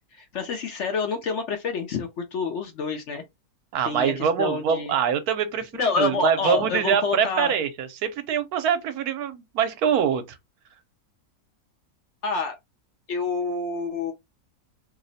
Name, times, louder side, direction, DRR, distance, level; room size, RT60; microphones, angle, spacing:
voice 1, 0.1-3.2 3.8-4.9 5.7-7.5 12.2-12.5 13.1-14.1, left 4 dB, 60° left, 0.8 m, -28 dB
voice 2, 3.7-10.4, right 8 dB, 75° right, 1.1 m, -24 dB
2.9 x 2.0 x 3.9 m
omnidirectional pair, 1.7 m